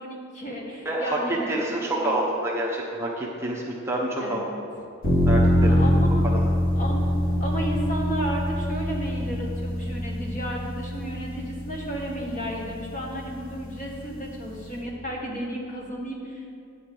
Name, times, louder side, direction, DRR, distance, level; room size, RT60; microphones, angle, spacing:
voice 1, 0.0-2.2 4.2-4.6 5.6-6.2 6.8-7.1 7.4-16.5, right 1 dB, 35° left, -2 dB, 1.5 m, -33 dB
voice 2, 0.8-1.2 1.5-4.4 5.3-5.8 6.3-6.5, right 1 dB, 10° right, -3 dB, 0.9 m, -28 dB
sound 1, 5.0-14.8, equal, 85° left, 2.4 m, -25 dB
9.4 x 5.1 x 7.6 m, 2.5 s
head